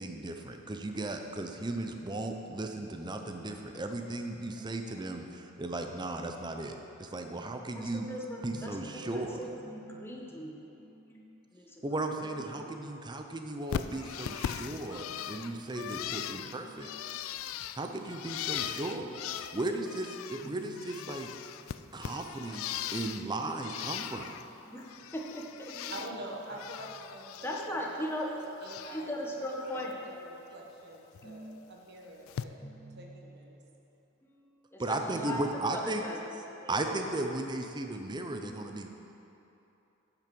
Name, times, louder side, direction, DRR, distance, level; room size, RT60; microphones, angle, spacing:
voice 1, 0.0-8.1 8.4-9.4 11.8-16.9 17.8-19.1 19.5-21.3 21.9-24.3 34.8-36.0 36.7-38.9, right 2 dB, 20° right, 4 dB, 0.6 m, -36 dB
voice 2, 7.7-12.8 15.9-16.9 18.9-20.0 20.4-21.3 24.6-25.9 27.4-28.3 28.9-30.0 31.2-31.7 32.6-33.7 34.2-37.0 38.3-38.5, equal, 10° left, -1 dB, 1.0 m, -41 dB
Bird, 13.7-20.5 20.7-23.3 23.6-24.4 24.8-26.1 26.4-27.7 28.0-29.1 29.4-29.9 31.1-31.3 32.3-32.4, left 10 dB, 85° left, 0.3 m, -39 dB
voice 3, 25.9-28.1 28.6-29.4 29.9-32.6 33.0-33.6, right 1 dB, 55° right, 0 dB, 1.2 m, -45 dB
8.9 x 6.0 x 6.1 m, 3.0 s
head